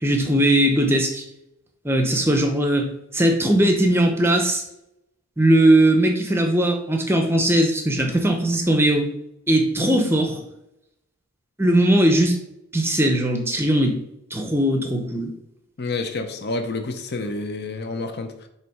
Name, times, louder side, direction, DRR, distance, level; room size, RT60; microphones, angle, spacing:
voice 1, 0.0-1.2 1.8-2.9 3.1-4.6 5.4-9.1 9.5-10.4 11.6-12.4 12.7-14.0 14.3-15.3, right 1 dB, 10° right, 4 dB, 0.6 m, -19 dB
voice 2, 15.8-18.5, left 3 dB, 45° left, 7 dB, 0.6 m, -29 dB
6.5 x 3.1 x 4.7 m, 0.84 s
head